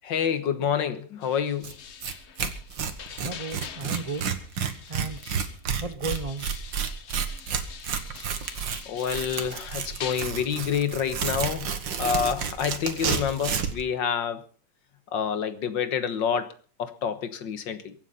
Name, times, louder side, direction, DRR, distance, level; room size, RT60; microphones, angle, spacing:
voice 1, 0.0-1.7 2.4-2.5 8.9-14.4 15.1-16.5 16.8-18.0, left 8 dB, 85° left, 11 dB, 2.0 m, -28 dB
sound 1, 1.2-5.7 6.1-10.5, left 8 dB, 50° left, 1.0 m, -44 dB
Tearing, 1.6-1.7 2.0-2.1 2.4-13.8, right 7 dB, 90° right, 2.2 m, -30 dB
voice 2, 3.1-4.3 4.9-5.3 5.8-6.5, right 3 dB, 70° right, 10 dB, 0.3 m, -34 dB
23.5 x 8.2 x 5.6 m, 0.41 s
omnidirectional pair, 1.9 m